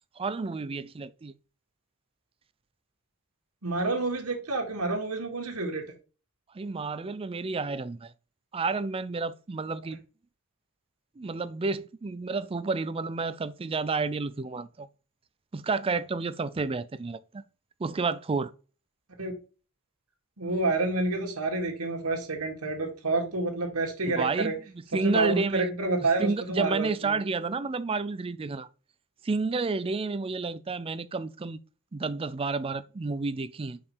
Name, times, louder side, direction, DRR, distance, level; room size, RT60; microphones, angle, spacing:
voice 1, 0.2-1.4 6.5-8.1 8.5-10.0 11.2-14.9 15.5-17.4 17.8-18.5 24.0-25.7 26.0-28.7 29.2-31.6 31.9-33.8, right 4 dB, 25° right, 0.4 m, -30 dB
voice 2, 3.6-5.9 19.2-19.3 20.4-24.6 25.0-27.2, right 3 dB, 80° right, 1.9 m, -28 dB
5.4 x 5.0 x 4.6 m
head